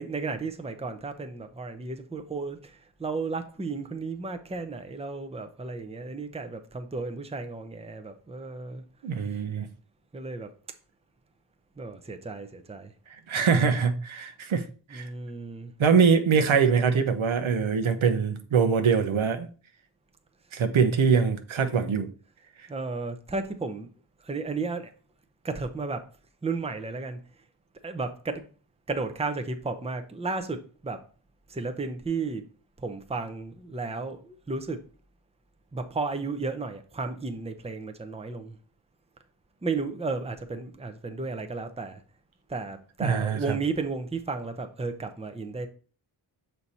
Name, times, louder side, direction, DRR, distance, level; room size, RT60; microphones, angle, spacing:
voice 1, 0.0-8.8 10.1-10.5 11.8-12.9 14.9-15.7 22.7-23.9 24.2-24.9 25.4-26.0 26.4-27.2 27.8-28.5 28.9-31.0 31.5-32.4 32.8-34.8 35.7-38.6 39.6-42.0 42.5-45.7, right 3 dB, 15° right, 0.7 m, -33 dB
voice 2, 9.0-9.7 13.3-14.7 14.9-15.1 15.8-19.5 20.5-22.1 43.0-43.6, right 6 dB, 70° right, 0.9 m, -23 dB
6.7 x 4.5 x 4.2 m
wide cardioid pair, 85°, 50 cm